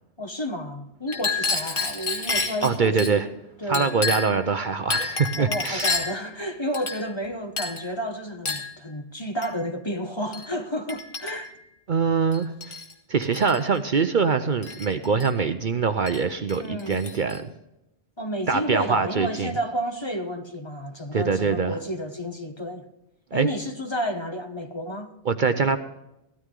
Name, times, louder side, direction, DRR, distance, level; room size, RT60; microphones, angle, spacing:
voice 1, 0.2-3.3 3.6-4.0 5.4-11.6 16.6-17.0 18.2-22.9 23.3-25.1, equal, 25° left, 1.0 m, -31 dB
Chink clink, 1.1-3.1 3.7-4.4 4.9-6.2 6.7-7.3 7.6-7.9 8.5-8.7 9.4-9.6 10.3-10.5 10.9-11.6 12.3-12.9 13.2-13.6 14.6-15.3 16.1-16.2 16.5-17.4, left 3 dB, 50° left, 1.8 m, -29 dB
voice 2, 2.6-3.3 3.7-5.9 11.9-12.7 13.1-17.5 18.5-19.5 21.1-21.8 23.3-23.5 25.3-25.8, right 5 dB, 50° right, 0.8 m, -23 dB
15.5 x 13.0 x 3.8 m
omnidirectional pair, 1.2 m